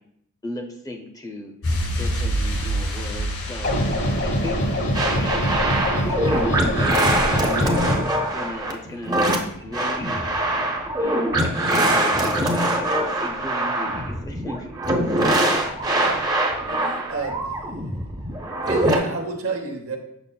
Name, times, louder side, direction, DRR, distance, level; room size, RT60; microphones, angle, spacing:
voice 1, 0.4-1.5 1.9-3.8 4.2-4.8 5.2-8.1 8.3-10.3 11.0-14.7, left 1 dB, 15° left, 2 dB, 0.7 m, -35 dB
sound 1, 1.6-8.1 8.4-8.5, right 1 dB, 80° left, 1.7 m, -29 dB
sound 2, 3.6-8.0, equal, 55° left, 1.1 m, -24 dB
sound 3, 4.9-19.0, right 1 dB, 20° right, 0.7 m, -23 dB
voice 2, 15.9-17.4 18.6-20.0, right 4 dB, 70° right, 3 dB, 0.9 m, -31 dB
7.2 x 6.0 x 2.3 m, 0.75 s
head